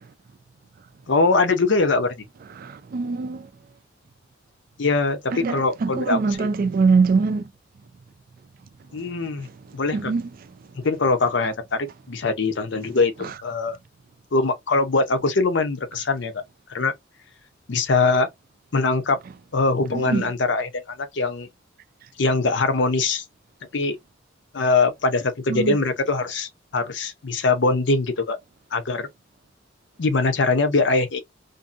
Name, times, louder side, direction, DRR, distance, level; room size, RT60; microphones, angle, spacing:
voice 1, 1.1-2.1 4.8-6.5 8.9-9.5 9.7-10.1 10.8-13.8 14.3-16.4 16.7-16.9 17.7-18.3 18.7-19.2 19.5-21.5 22.2-23.2 23.7-24.0 24.5-28.4 28.7-29.1 30.0-31.2, left 3 dB, 65° left, 0.6 m, -22 dB
voice 2, 2.6-3.5 5.3-7.5 9.4-9.5 9.9-10.3 13.2-13.3 19.9-20.2 25.5-25.8, right 4 dB, 50° right, 0.4 m, -23 dB
2.6 x 2.5 x 2.4 m
head